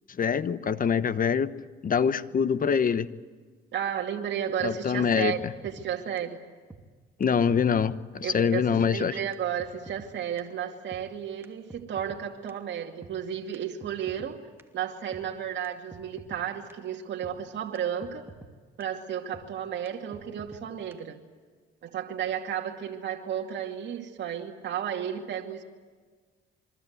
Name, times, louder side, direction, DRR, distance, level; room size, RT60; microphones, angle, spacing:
voice 1, 0.2-1.5 1.8-3.1 4.6-5.3 7.2-9.1, left 6 dB, 45° left, 13 dB, 1.2 m, -24 dB
voice 2, 3.7-6.4 8.2-14.4 14.7-18.3 18.8-21.2 21.8-25.6, right 9 dB, 65° right, 0 dB, 2.5 m, -33 dB
sound 1, 4.6-4.7 5.1-5.2 5.4-5.9 6.2-6.3 6.7-6.8 7.2-7.3 7.5-8.0 8.3-8.4 8.8-8.9 9.3-9.4 9.6-10.1 10.4-10.5 10.9-11.0 11.4-12.2 12.5-12.6 13.0-13.1 13.5-13.6 13.8-14.3 14.6-14.7 15.1-15.2 15.6-15.7 15.9-16.4 16.7-16.8 17.2-17.3 17.8-17.9 18.0-18.5 18.8-18.9 19.3-19.5 19.9-20.0 20.1-20.6 20.9-21.0, right 3 dB, 10° right, 2.7 m, -47 dB
27.5 x 24.0 x 8.0 m, 1.5 s
cardioid pair, 90°, 20 cm